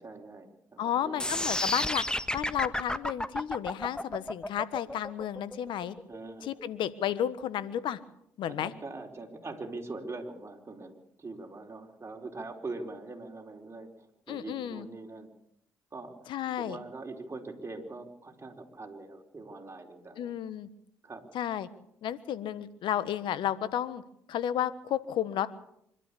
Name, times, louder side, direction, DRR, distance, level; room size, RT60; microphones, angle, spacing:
voice 1, 0.0-1.2 6.1-6.5 8.5-15.3 15.9-16.1 16.6-20.3 21.0-21.2, right 3 dB, 30° right, 2 dB, 4.7 m, -42 dB
voice 2, 0.8-2.0 2.3-5.9 6.4-8.0 8.4-8.7 14.3-14.9 16.3-16.8 20.2-20.7 21.3-21.7 22.0-24.0 24.3-25.5, left 10 dB, 75° left, 15 dB, 1.4 m, -32 dB
sound 1, 1.2-7.2, left 1 dB, 10° left, 1.6 m, -32 dB
25.0 x 12.5 x 8.5 m, 0.73 s
supercardioid pair, 55°, 8 cm